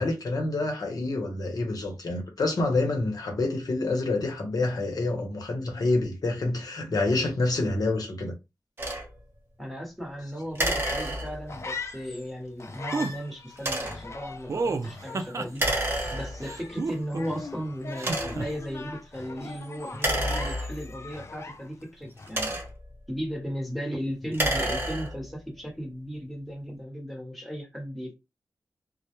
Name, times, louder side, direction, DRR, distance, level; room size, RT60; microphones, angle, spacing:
voice 1, 0.0-8.4, left 2 dB, 70° left, 0.8 m, -27 dB
sound 1, 8.8-9.1 10.6-11.6 13.6-14.1 15.6-16.6 17.2-17.3 18.0-18.6 19.9-21.1 22.0-22.9 24.2-25.3, right 1 dB, 35° right, 0.9 m, -29 dB
voice 2, 9.6-15.8 16.1-22.6 23.1-28.1, equal, ahead, 1.0 m, -36 dB
sound 2, 10.8-12.3 12.6-21.9 22.2-22.6, left 4 dB, 45° left, 0.4 m, -41 dB
sound 3, 12.9-13.1 14.5-15.7 16.4-17.4 18.0-18.5, right 3 dB, 50° right, 0.4 m, -30 dB
2.1 x 2.0 x 2.9 m
wide cardioid pair, 80°, 7 cm